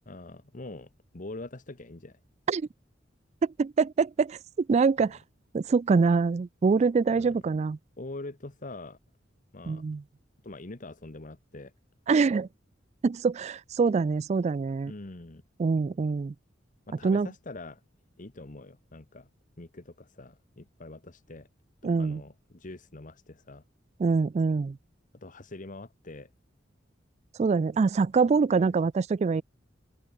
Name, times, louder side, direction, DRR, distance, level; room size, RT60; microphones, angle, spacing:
voice 1, 0.0-2.2 5.0-5.1 7.1-7.4 8.0-9.0 9.5-9.8 10.4-11.7 14.8-15.4 16.9-17.8 18.2-19.3 19.6-21.5 22.0-23.6 25.2-26.3 28.3-28.7, left 2 dB, 45° left, 1.3 m, -44 dB
voice 2, 3.6-5.2 5.5-7.8 9.7-10.0 12.1-12.5 13.0-14.9 15.6-16.3 17.0-17.3 21.8-22.2 24.0-24.8 27.4-29.4, right 4 dB, 35° right, 0.3 m, -24 dB
open air
head